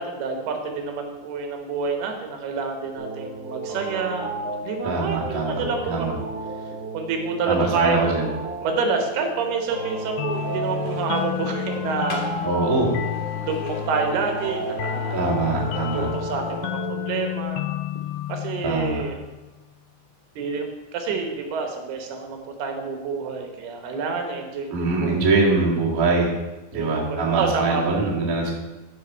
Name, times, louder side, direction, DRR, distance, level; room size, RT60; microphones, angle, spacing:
voice 1, 0.0-4.3 4.6-6.1 6.9-12.3 13.3-15.4 15.9-17.6 18.3-19.2 20.4-25.3 26.7-27.8, right 4 dB, 75° right, 4 dB, 3.0 m, -28 dB
sound 1, 2.9-17.4, right 2 dB, 60° right, 2.9 m, -34 dB
voice 2, 4.8-6.1 7.5-8.3 12.4-12.9 15.1-16.1 18.6-19.0 24.7-26.3 26.7-28.5, right 3 dB, 45° right, -4 dB, 1.1 m, -23 dB
sound 2, 10.2-19.5, left 14 dB, 85° left, 2.5 m, -31 dB
sound 3, 10.3-16.7, left 2 dB, 60° left, 2.7 m, -40 dB
14.0 x 5.1 x 4.5 m, 1.1 s
omnidirectional pair, 4.8 m